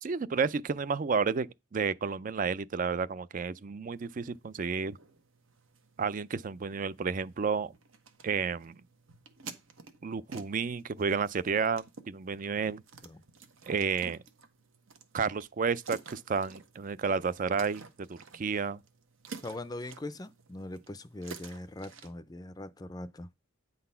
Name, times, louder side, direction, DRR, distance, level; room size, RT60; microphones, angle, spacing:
voice 1, 0.0-5.0 6.0-7.7 8.2-8.8 10.0-12.8 13.7-14.2 15.1-18.8, right 5 dB, 40° right, 0.4 m, -31 dB
sound 1, 3.9-22.1, right 4 dB, 80° right, 1.2 m, -51 dB
voice 2, 19.4-23.3, left 1 dB, 20° left, 0.4 m, -41 dB
9.5 x 4.0 x 5.5 m
head